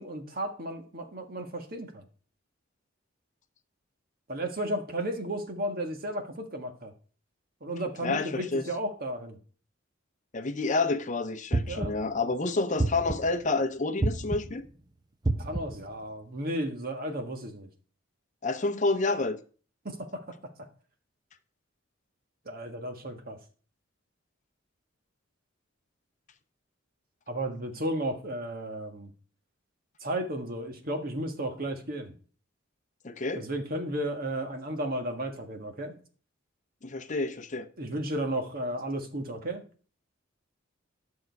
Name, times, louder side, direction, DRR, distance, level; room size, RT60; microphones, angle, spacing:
voice 1, 0.0-2.0 4.3-6.9 7.6-9.4 11.7-12.0 15.4-17.7 19.8-20.2 22.4-23.4 27.3-29.1 30.0-32.1 33.3-35.9 37.8-39.6, right 1 dB, 45° right, 1.6 m, -34 dB
voice 2, 8.0-8.7 10.3-14.7 18.4-19.4 33.0-33.4 36.8-37.7, left 3 dB, 40° left, 0.7 m, -29 dB
sound 1, 11.5-12.2 12.8-13.4 14.0-14.7 15.2-15.9, right 2 dB, 20° right, 0.7 m, -29 dB
12.0 x 6.4 x 4.6 m
head